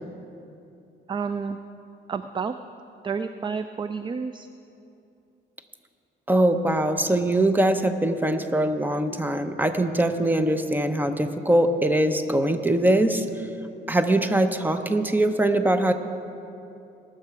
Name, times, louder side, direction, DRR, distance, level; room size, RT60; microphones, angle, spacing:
voice 1, 1.1-1.6 2.1-2.5 3.0-4.5, right 5 dB, 25° right, 11 dB, 0.3 m, -30 dB
voice 2, 6.3-13.2 13.9-15.9, right 1 dB, 10° right, 9 dB, 0.7 m, -22 dB
19.0 x 6.7 x 4.7 m, 2.8 s
cardioid pair, 90°, 20 cm